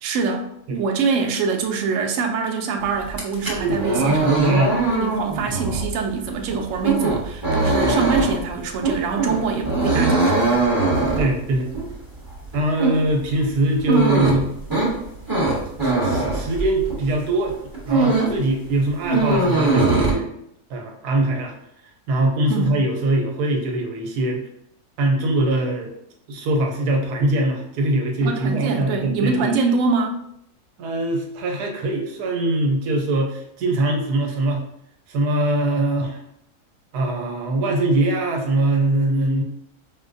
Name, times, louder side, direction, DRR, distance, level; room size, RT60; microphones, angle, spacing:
voice 1, 0.0-4.6 4.8-10.7 22.5-22.8 28.2-30.2, right 5 dB, 70° right, 3 dB, 0.8 m, -24 dB
sound 1, 3.0-17.1 17.5-18.4 18.7-20.1, right 2 dB, 20° right, 0.7 m, -21 dB
voice 2, 3.6-4.7 11.2-11.7 12.5-14.5 15.8-17.6 17.9-20.3 20.7-21.5 22.1-24.4 25.0-25.9 26.3-29.5 30.8-34.6 35.1-36.2 36.9-39.4, right 1 dB, 85° right, 2 dB, 1.2 m, -22 dB
4.6 x 2.1 x 2.6 m, 0.75 s
omnidirectional pair, 1.7 m